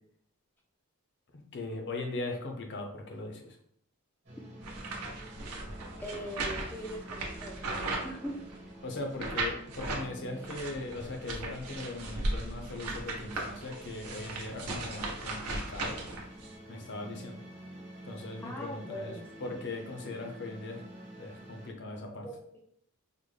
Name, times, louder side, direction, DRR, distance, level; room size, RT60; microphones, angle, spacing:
voice 1, 1.5-3.6 8.8-16.0 16.7-17.4 18.0-20.8 21.2-22.3, left 2 dB, 55° left, 3 dB, 0.6 m, -39 dB
sound 1, 4.2-21.7, right 1 dB, 50° right, 1.1 m, -49 dB
sound 2, 4.6-8.7 9.2-10.1 10.4-16.5, right 2 dB, 75° right, 0.8 m, -37 dB
voice 2, 6.0-8.4 18.4-19.3 22.2-22.3, equal, 10° left, -1 dB, 0.4 m, -41 dB
3.8 x 2.1 x 3.2 m, 0.66 s
head